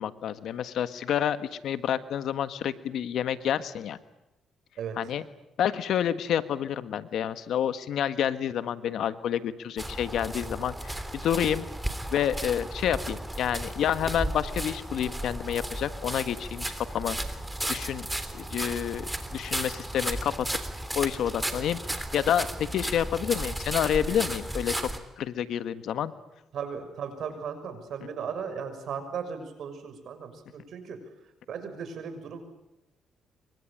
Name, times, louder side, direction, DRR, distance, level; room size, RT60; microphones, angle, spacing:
voice 1, 0.0-4.0 5.0-5.2 5.6-11.6 12.1-17.2 17.7-18.1 18.3-20.3 20.9-24.9 25.2-26.1, left 9 dB, 75° left, 12 dB, 1.5 m, -29 dB
sound 1, 9.8-25.0, right 1 dB, 5° right, 3.2 m, -34 dB
voice 2, 26.5-31.0 31.5-32.4, right 6 dB, 65° right, 8 dB, 6.3 m, -36 dB
26.5 x 24.0 x 8.8 m, 0.92 s
cardioid pair, 90°, 0 cm